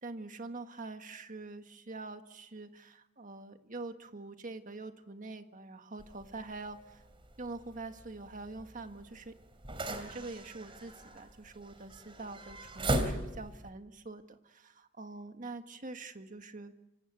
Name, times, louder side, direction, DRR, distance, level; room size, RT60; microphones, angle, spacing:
voice 1, 0.0-7.0 7.4-9.4 9.8-16.7, right 3 dB, 45° right, 7 dB, 1.6 m, -45 dB
sound 1, 6.0-13.7, right 1 dB, 30° right, 3.2 m, -39 dB
26.5 x 25.5 x 8.1 m, 0.95 s
head